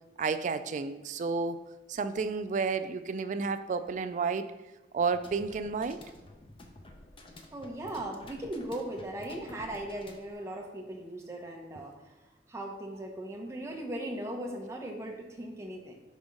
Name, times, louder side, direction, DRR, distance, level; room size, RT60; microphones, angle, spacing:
voice 1, 0.2-1.6 1.9-4.5 4.9-6.0, right 4 dB, 45° right, 11 dB, 0.3 m, -31 dB
sound 1, 5.0-10.3, left 1 dB, 30° left, 0.6 m, -51 dB
voice 2, 7.5-11.9 12.5-15.9, right 1 dB, 15° right, 0 dB, 0.8 m, -38 dB
5.2 x 3.5 x 5.2 m, 1.1 s
head